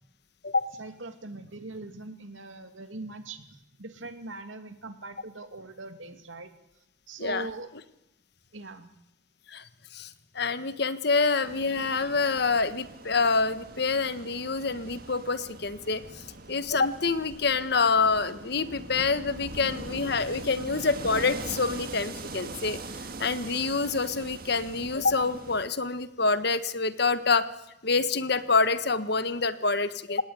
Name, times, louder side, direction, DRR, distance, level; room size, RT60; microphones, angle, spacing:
voice 1, 0.8-6.5 7.1-7.7 8.5-8.9, right 2 dB, 80° right, 8 dB, 2.7 m, -41 dB
voice 2, 9.9-22.8 23.2-27.5 27.8-30.2, left 4 dB, 55° left, 12 dB, 1.4 m, -27 dB
sound 1, 11.4-25.7, right 2 dB, 50° right, 1.8 m, -42 dB
28.0 x 18.5 x 9.7 m, 0.89 s
head